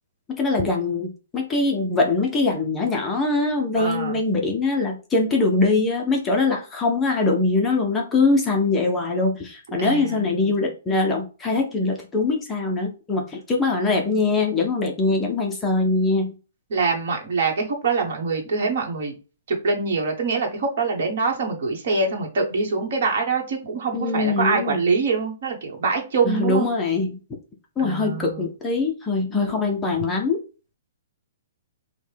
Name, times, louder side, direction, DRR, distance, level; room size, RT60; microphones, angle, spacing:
voice 1, 0.3-16.3 23.9-24.8 26.2-27.2 27.8-30.4, left 3 dB, 10° left, 0 dB, 0.5 m, -22 dB
voice 2, 3.8-4.2 9.8-10.3 16.7-19.1 19.5-26.7 27.8-28.5, right 4 dB, 45° right, 1 dB, 1.2 m, -24 dB
5.3 x 2.1 x 3.3 m, 0.33 s
hypercardioid pair, 175°, 0 cm